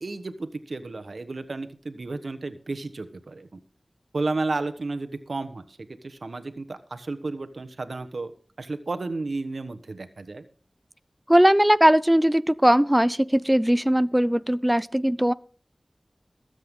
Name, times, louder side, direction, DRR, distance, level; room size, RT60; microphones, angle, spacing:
voice 1, 0.0-3.6 4.1-8.3 8.6-10.4, right 3 dB, 85° right, 10 dB, 1.2 m, -32 dB
voice 2, 11.3-15.3, equal, 10° right, 16 dB, 0.5 m, -19 dB
21.5 x 7.9 x 3.7 m, 0.40 s
wide cardioid pair, 45°, 0 cm